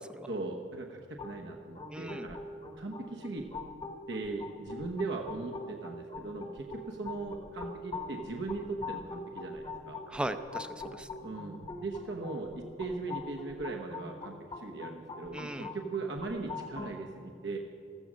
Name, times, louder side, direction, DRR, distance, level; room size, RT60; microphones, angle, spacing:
voice 1, 0.3-2.4 2.7-3.4 4.1-10.0 11.2-17.6, right 3 dB, 70° right, 1 dB, 1.1 m, -39 dB
sound 1, 1.2-17.0, left 3 dB, 25° left, 1.0 m, -43 dB
voice 2, 1.9-2.3 10.1-11.1 15.3-15.7, right 1 dB, 5° right, 9 dB, 0.5 m, -38 dB
14.5 x 14.5 x 6.3 m, 2.7 s
head